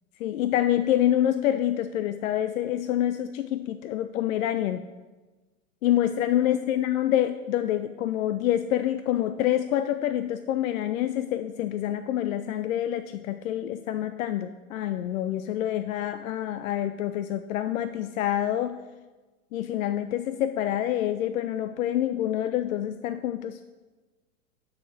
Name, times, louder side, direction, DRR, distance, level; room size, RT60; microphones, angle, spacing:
voice 1, 0.2-4.8 5.8-18.8 19.5-23.6, left 12 dB, 70° left, 11 dB, 0.5 m, -27 dB
9.4 x 4.3 x 6.0 m, 1.3 s
hypercardioid pair, 110°, 42 cm